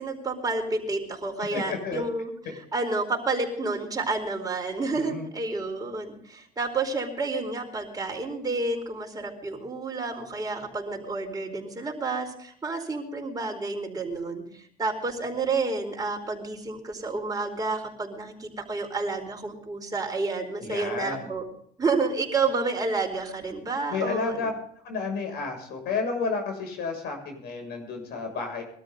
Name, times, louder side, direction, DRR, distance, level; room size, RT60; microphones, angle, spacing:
voice 1, 0.0-2.3 2.7-21.4 21.8-24.5, right 3 dB, 20° right, 2 dB, 4.6 m, -30 dB
voice 2, 1.5-2.0 4.9-5.3 20.6-21.3 23.9-24.5 24.8-28.6, left 4 dB, 75° left, 4 dB, 6.8 m, -31 dB
22.0 x 13.0 x 4.0 m, 0.62 s
cardioid pair, 110°, 17 cm